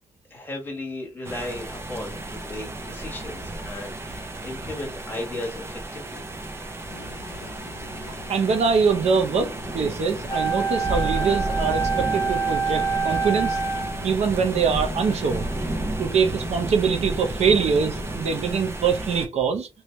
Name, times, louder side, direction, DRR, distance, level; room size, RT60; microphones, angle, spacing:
voice 1, 0.3-6.2, left 2 dB, 15° left, 1.2 m, -35 dB
sound 1, 1.2-19.3, right 1 dB, 20° right, 0.6 m, -32 dB
sound 2, 6.9-18.7, left 5 dB, 90° left, 0.7 m, -43 dB
voice 2, 8.3-13.6 14.0-15.4 16.0-19.7, right 6 dB, 65° right, 0.6 m, -23 dB
Wind instrument woodwind instrument, 10.3-14.1, right 5 dB, 40° left, 0.6 m, -26 dB
3.1 x 2.7 x 3.2 m
wide cardioid pair, 140°, 12 cm